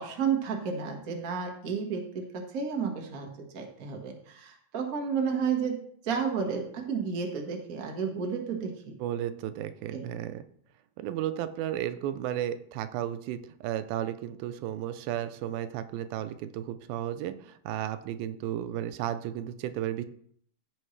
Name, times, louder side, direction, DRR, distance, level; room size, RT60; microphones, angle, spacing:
voice 1, 0.0-8.9 9.9-10.0, right 6 dB, 65° right, 2 dB, 0.8 m, -32 dB
voice 2, 9.0-10.4 11.0-20.0, right 11 dB, 85° right, 12 dB, 2.4 m, -33 dB
15.0 x 5.3 x 3.2 m, 0.65 s
omnidirectional pair, 4.1 m